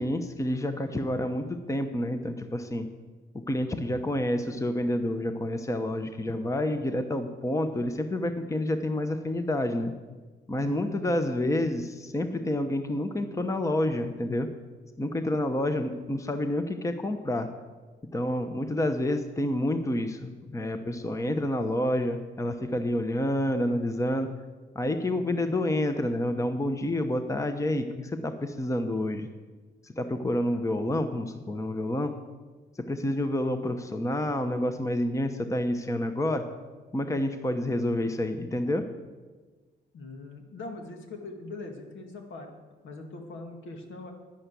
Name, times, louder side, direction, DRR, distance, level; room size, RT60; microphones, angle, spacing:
voice 1, 0.0-2.9 3.5-9.9 10.5-14.5 15.0-17.5 18.1-24.3 24.7-29.3 29.8-32.1 32.9-36.4 36.9-38.9, left 1 dB, 15° left, 8 dB, 0.9 m, -28 dB
voice 2, 10.6-10.9 25.0-25.4 39.9-42.5 42.8-44.1, left 2 dB, 75° left, 3 dB, 2.2 m, -42 dB
11.0 x 10.5 x 6.9 m, 1.3 s
cardioid pair, 90°, 20 cm